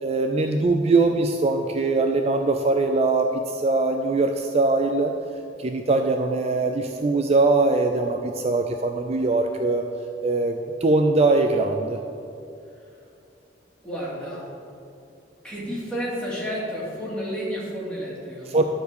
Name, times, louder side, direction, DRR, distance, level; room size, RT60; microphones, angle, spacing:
voice 1, 0.0-5.1 5.6-9.8 10.2-12.0 18.5-18.6, right 3 dB, 35° right, 4 dB, 0.4 m, -22 dB
voice 2, 13.8-14.5 15.4-18.6, equal, 5° left, -7 dB, 2.6 m, -31 dB
12.0 x 4.6 x 6.7 m, 2.7 s
head